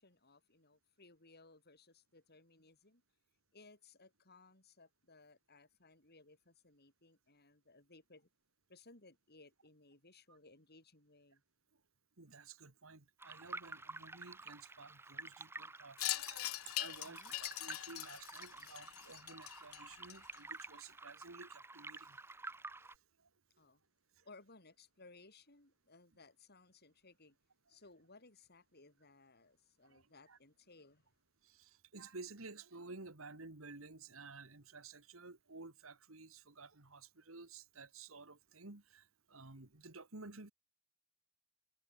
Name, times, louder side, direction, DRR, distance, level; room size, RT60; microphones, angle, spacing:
voice 1, 0.0-3.0 3.5-8.3 8.7-11.4 17.0-17.3 23.6-23.8 24.2-27.4 27.7-31.1, left 3 dB, 50° left, 7.6 m, -62 dB
voice 2, 12.2-16.5 16.8-22.2 22.8-22.9 24.2-24.3 29.8-30.0 30.3-30.4 31.4-40.5, right 3 dB, 70° right, 2.1 m, -54 dB
sound 1, 13.2-23.0, right 3 dB, 10° right, 0.5 m, -51 dB
Wind chime, 16.0-20.6, left 16 dB, 75° left, 0.6 m, -42 dB
head